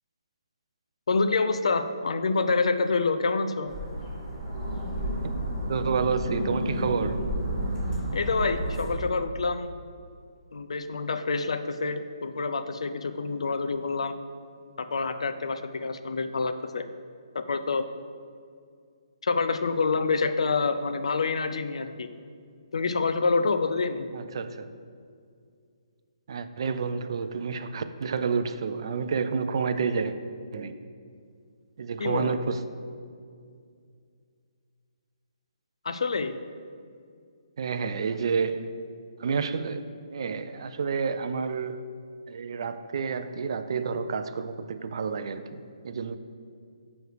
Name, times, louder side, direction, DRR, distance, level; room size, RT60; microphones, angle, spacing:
voice 1, 1.1-3.7 8.1-9.7 10.5-14.2 14.8-16.9 17.3-17.8 19.2-22.1 22.7-24.1 32.0-32.3 35.8-36.4, left 4 dB, 75° left, 9 dB, 0.4 m, -27 dB
sound 1, 3.7-8.9, equal, 15° right, 1.7 m, -31 dB
voice 2, 5.6-7.2 24.1-24.7 26.3-30.2 30.5-30.8 31.8-32.6 37.6-38.8 39.2-39.8 40.1-41.8 42.3-46.1, right 5 dB, 55° right, 10 dB, 0.4 m, -29 dB
9.1 x 3.2 x 4.8 m, 2.2 s
hypercardioid pair, 155°, 3 cm